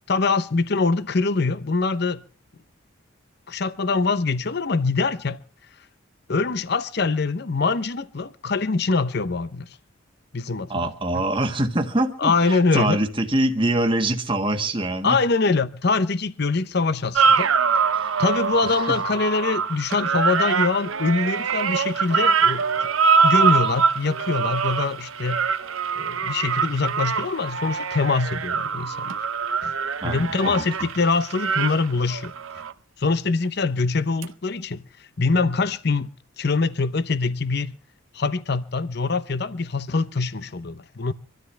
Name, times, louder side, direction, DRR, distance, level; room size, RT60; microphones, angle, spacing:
voice 1, 0.1-2.2 3.5-5.4 6.3-9.7 10.3-10.7 11.1-11.2 12.2-13.0 15.0-17.5 18.2-22.9 23.2-25.4 26.0-29.1 29.6-29.8 30.0-32.3 33.0-37.8 38.1-41.1, left 4 dB, 50° left, 0.7 m, -24 dB
voice 2, 10.7-15.2 17.9-18.2 18.6-19.0 30.0-30.7, right 1 dB, 25° right, 1.6 m, -24 dB
sound 1, 17.2-32.7 34.2-34.3, right 5 dB, 80° right, 0.8 m, -23 dB
26.0 x 13.0 x 3.3 m
head